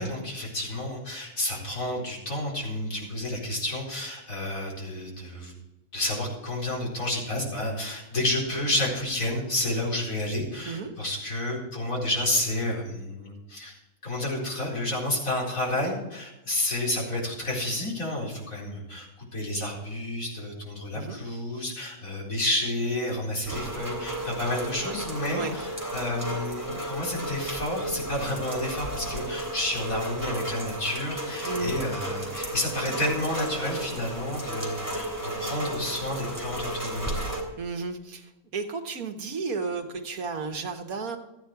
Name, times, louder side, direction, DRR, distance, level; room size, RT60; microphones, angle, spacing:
voice 1, 0.0-5.5 5.9-37.2, left 1 dB, 70° left, -4 dB, 4.9 m, -30 dB
Rain, 23.4-37.4, right 1 dB, 15° right, 3.3 m, -33 dB
voice 2, 31.5-31.8 37.6-41.2, right 4 dB, 85° right, 5 dB, 1.8 m, -33 dB
14.5 x 9.5 x 4.7 m, 1.0 s
omnidirectional pair, 1.5 m